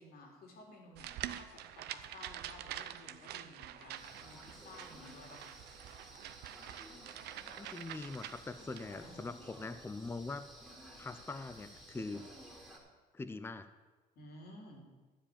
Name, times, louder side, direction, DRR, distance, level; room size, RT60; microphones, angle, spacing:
voice 1, 0.0-5.6 8.9-9.2 14.1-14.9, left 1 dB, 65° left, 0 dB, 3.4 m, -54 dB
sound 1, 1.0-8.9, right 12 dB, 75° right, 0.6 m, -46 dB
sound 2, 3.9-12.8, right 1 dB, ahead, 2.6 m, -54 dB
voice 2, 7.6-10.5 11.0-12.3 13.1-13.7, left 3 dB, 15° left, 11 dB, 0.5 m, -43 dB
12.5 x 5.0 x 8.6 m, 1.3 s
cardioid pair, 110°, 17 cm